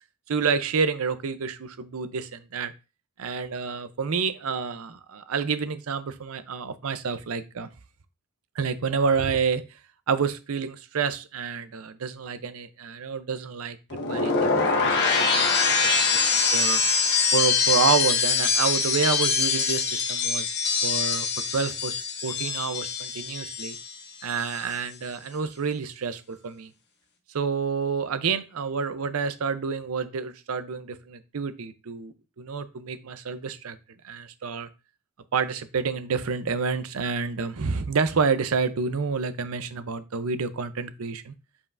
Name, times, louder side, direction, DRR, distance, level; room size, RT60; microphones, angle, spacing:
voice 1, 0.3-2.7 3.2-7.7 8.6-9.8 10.1-16.8 17.3-20.5 20.8-21.3 21.5-23.8 24.2-26.7 27.3-33.8 34.0-34.7 35.3-41.3, right 5 dB, 70° right, 12 dB, 0.6 m, -29 dB
sound 1, 13.9-24.0 24.3-24.7, left 5 dB, 50° left, 1.5 m, -24 dB
6.9 x 5.4 x 2.5 m, 0.30 s
head